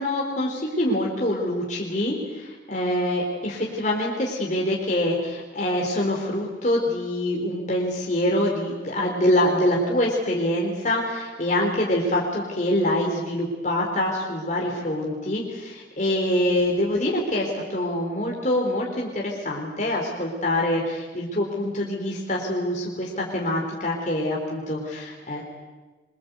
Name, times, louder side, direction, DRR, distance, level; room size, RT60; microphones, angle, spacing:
voice 1, 0.0-25.4, left 1 dB, 40° left, -2 dB, 4.0 m, -25 dB
26.5 x 23.5 x 8.2 m, 1.2 s
head